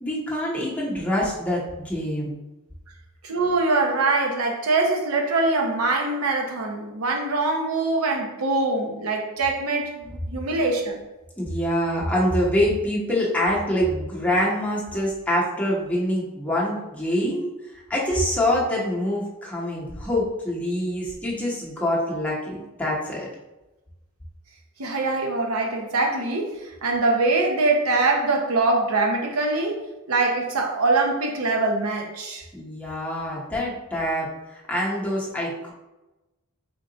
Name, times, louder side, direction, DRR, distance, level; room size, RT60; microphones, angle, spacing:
voice 1, 0.0-2.4 11.4-17.5 17.9-23.3 32.5-35.7, left 1 dB, 5° left, -5 dB, 0.9 m, -25 dB
voice 2, 3.2-11.0 24.8-29.8 30.1-32.4, right 3 dB, 90° right, 1 dB, 0.7 m, -23 dB
3.7 x 2.4 x 3.8 m, 1.0 s
head